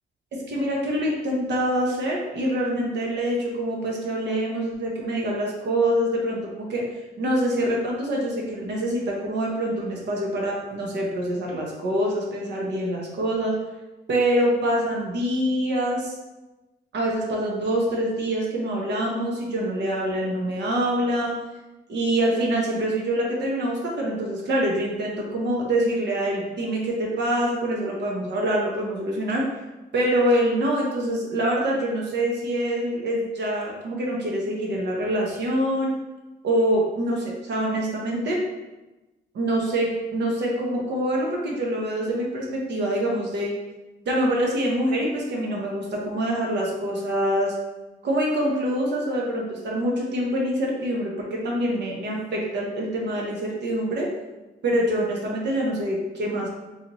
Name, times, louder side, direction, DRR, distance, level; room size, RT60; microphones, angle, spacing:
voice 1, 0.3-6.9 7.2-13.6 14.1-16.1 16.9-21.4 21.9-29.5 29.9-35.9 36.4-38.4 39.3-43.6 44.1-47.6 48.0-54.1 54.6-56.5, right 1 dB, 60° right, -2 dB, 0.9 m, -25 dB
4.0 x 2.8 x 3.0 m, 1.1 s
cardioid pair, 90°, 20 cm